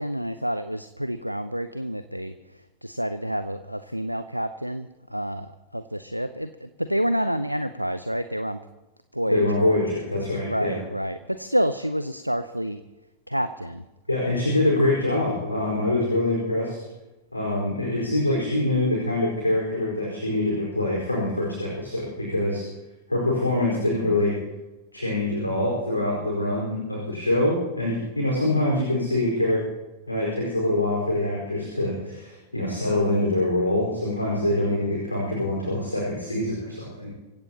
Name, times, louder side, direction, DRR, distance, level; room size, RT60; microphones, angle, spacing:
voice 1, 0.0-2.3 2.8-8.6 9.1-9.7 10.4-12.8 13.3-13.9, equal, 90° right, 12 dB, 0.6 m, -28 dB
voice 2, 9.3-10.8 14.1-16.8 17.3-22.6 23.1-24.3 24.9-29.6 30.1-37.1, left 1 dB, 85° left, -3 dB, 4.7 m, -24 dB
26.0 x 16.0 x 2.9 m, 1.0 s
figure-of-eight pair, 90°, 0 cm